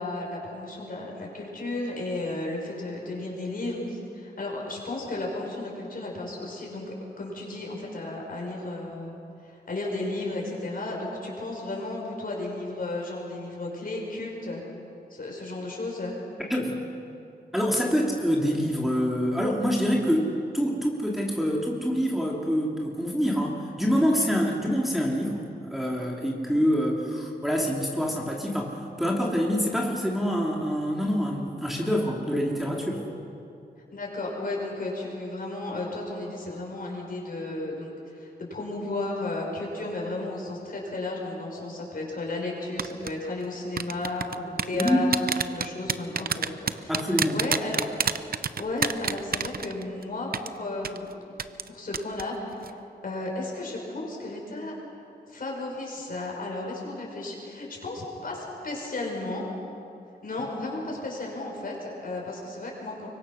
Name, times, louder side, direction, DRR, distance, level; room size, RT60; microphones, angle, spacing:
voice 1, 0.0-9.1 9.4-14.6 15.1-16.1 33.9-47.8 48.3-51.1 51.7-52.8 53.0-54.7 55.3-59.4 60.2-63.1, left 2 dB, 55° left, -1 dB, 6.2 m, -34 dB
voice 2, 16.5-16.8 17.5-33.0 44.7-45.1 46.9-47.4, equal, ahead, -3 dB, 2.7 m, -26 dB
sound 1, 42.8-43.1 43.8-50.0 50.3-50.5 50.8-51.0 51.4-51.7 51.9-52.2 52.5-52.7, right 6 dB, 60° right, 0.7 m, -27 dB
25.0 x 23.0 x 6.3 m, 2.7 s
wide cardioid pair, 110°, 17 cm